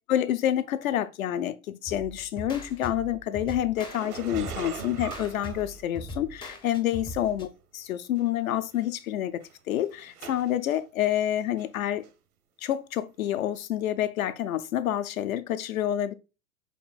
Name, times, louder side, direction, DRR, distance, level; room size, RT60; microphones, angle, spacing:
voice 1, 0.1-7.5 7.7-12.0 12.6-16.1, left 11 dB, 65° left, 0.7 m, -28 dB
sound 1, 1.9-7.5, equal, 10° left, 0.5 m, -41 dB
sound 2, 3.8-6.4 7.2-7.3 8.2-8.3 8.5-8.8 9.4-10.8 11.2-11.8 12.0-12.1 13.4-13.5, right 7 dB, 75° right, 0.8 m, -41 dB
5.2 x 3.1 x 2.3 m
figure-of-eight pair, 90°, 44 cm